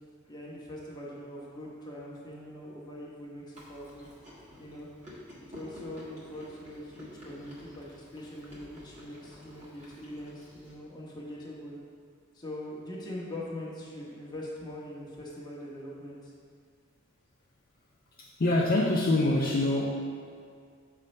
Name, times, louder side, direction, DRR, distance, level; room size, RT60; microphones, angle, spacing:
voice 1, 0.2-4.1 4.6-4.9 5.4-11.8 12.3-16.3, left 1 dB, 20° left, -5 dB, 1.1 m, -42 dB
Chewing mastication, 3.5-10.7, left 1 dB, 35° right, 1.5 m, -50 dB
voice 2, 18.2-19.9, left 2 dB, 45° left, -3 dB, 0.5 m, -25 dB
6.8 x 3.2 x 5.2 m, 2.2 s
head